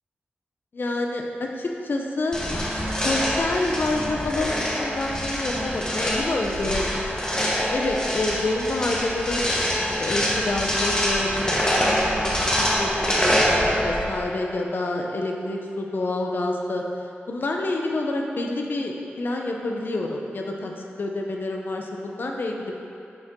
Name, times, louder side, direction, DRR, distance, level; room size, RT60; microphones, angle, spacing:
voice 1, 0.7-2.4 3.0-7.1 7.7-16.8 17.3-20.7 21.0-22.8, left 2 dB, 55° left, 1 dB, 0.9 m, -28 dB
sound 1, 2.3-14.2, equal, 20° left, 1.2 m, -25 dB
9.9 x 5.3 x 3.8 m, 2.7 s
wide cardioid pair, 85°, 4 cm